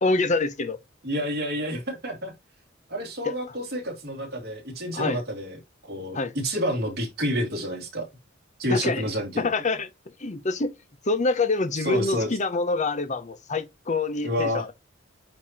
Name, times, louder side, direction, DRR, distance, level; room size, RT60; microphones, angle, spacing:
voice 1, 0.0-0.8 3.2-3.3 4.9-5.2 6.1-6.3 8.7-9.1 9.4-9.9 10.2-10.7 11.0-14.7, left 3 dB, 35° left, 0.8 m, -26 dB
voice 2, 1.0-2.3 2.9-5.6 5.9-8.1 8.6-9.5 11.8-12.3 14.2-14.6, equal, 55° right, 2.5 m, -29 dB
8.6 x 2.9 x 4.3 m
head